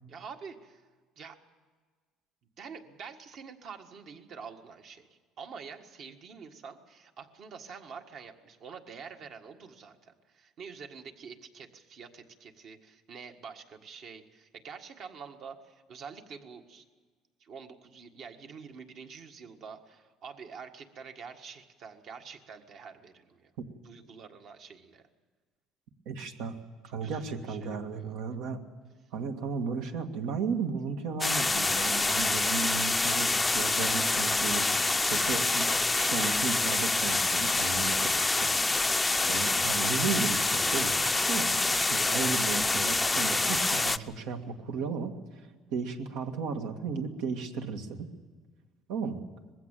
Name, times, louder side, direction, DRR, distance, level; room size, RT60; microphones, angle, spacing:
voice 1, 0.1-0.9 1.2-1.4 2.6-5.1 5.4-16.8 17.4-23.5 23.8-25.1 26.8-28.2, right 6 dB, 55° right, 5 dB, 1.7 m, -47 dB
voice 2, 26.1-26.6 26.9-28.6 29.1-34.7 35.0-35.7 36.0-38.5 39.3-48.1 48.9-49.2, right 5 dB, 80° right, 5 dB, 2.0 m, -34 dB
sound 1, 31.2-44.0, left 3 dB, 10° left, 0.5 m, -26 dB
21.0 x 15.5 x 9.0 m, 1.5 s
cardioid pair, 125°, 0 cm